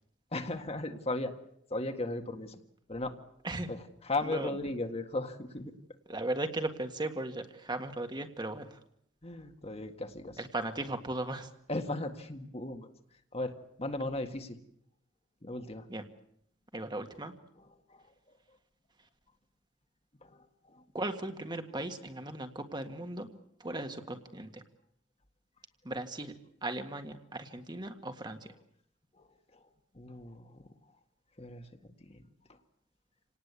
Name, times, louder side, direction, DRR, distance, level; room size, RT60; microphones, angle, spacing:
voice 1, 0.3-1.3 1.7-2.6 2.9-3.1 3.7-5.7 9.2-10.4 11.7-12.9 13.3-13.5 13.8-14.6 15.4-15.9 17.9-18.1 20.2-20.9 29.2-29.3 29.5-29.6 29.9-30.6 31.4-32.2, left 2 dB, 30° left, 7 dB, 1.9 m, -36 dB
voice 2, 6.1-8.8 10.4-11.5 15.9-16.0 16.7-17.3 20.9-24.6 25.8-26.3 26.6-28.5, right 2 dB, 25° right, 7 dB, 1.8 m, -37 dB
28.0 x 18.5 x 8.3 m, 0.72 s
head